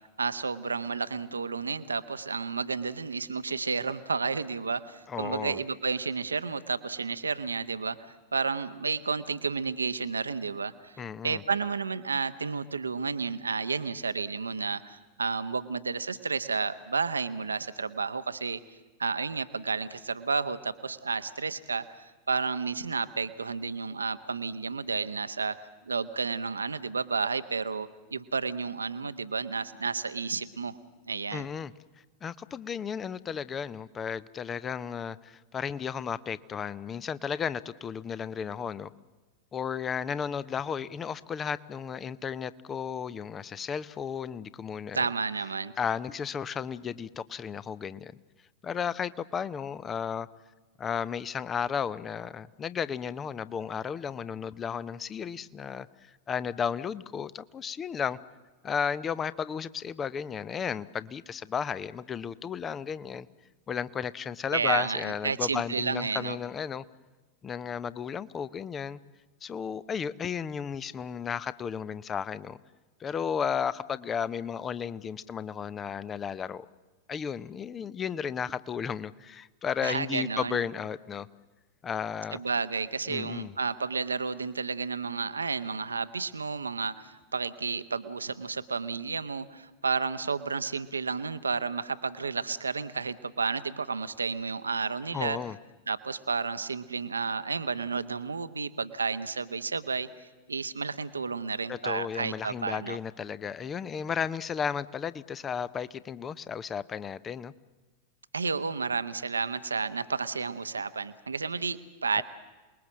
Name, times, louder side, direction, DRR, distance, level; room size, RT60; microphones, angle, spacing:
voice 1, 0.2-8.0 8.3-18.6 19.0-30.8 31.1-31.5 44.9-45.7 64.5-66.4 79.8-80.6 82.3-95.4 95.9-103.0 108.3-112.2, right 4 dB, 75° right, 13 dB, 1.1 m, -31 dB
voice 2, 5.1-5.6 11.0-11.4 31.3-31.7 32.2-38.9 39.5-45.0 45.8-48.2 48.6-50.3 50.8-55.9 56.3-58.2 58.6-63.3 63.7-66.8 67.4-69.0 69.4-72.6 73.0-76.7 77.1-81.3 81.8-82.4 83.1-83.5 95.1-95.6 101.7-107.5 112.2-112.3, left 7 dB, 20° left, 17 dB, 0.8 m, -34 dB
27.5 x 21.0 x 7.4 m, 1.3 s
figure-of-eight pair, 90°, 0 cm